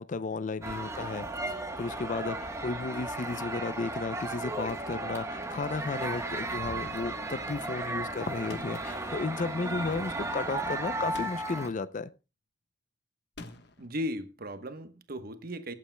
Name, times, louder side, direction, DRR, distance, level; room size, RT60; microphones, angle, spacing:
voice 1, 0.0-12.1, left 4 dB, 40° left, 0.4 m, -34 dB
sound 1, 0.6-11.7, right 2 dB, 15° right, 1.2 m, -35 dB
sound 2, 8.5-9.0 11.1-11.7 13.4-13.9, left 2 dB, 60° left, 1.2 m, -45 dB
voice 2, 13.8-15.7, equal, 50° right, 1.1 m, -36 dB
22.5 x 8.5 x 2.2 m
head